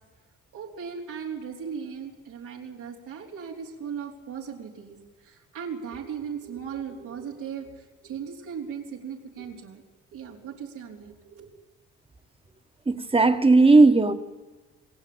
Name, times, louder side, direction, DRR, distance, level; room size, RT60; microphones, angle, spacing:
voice 1, 0.5-9.8 10.1-11.5, right 7 dB, 85° right, 4.0 m, -37 dB
voice 2, 12.9-14.1, right 3 dB, 20° right, 1.6 m, -16 dB
27.0 x 20.0 x 8.9 m
cardioid pair, 90°, 30 cm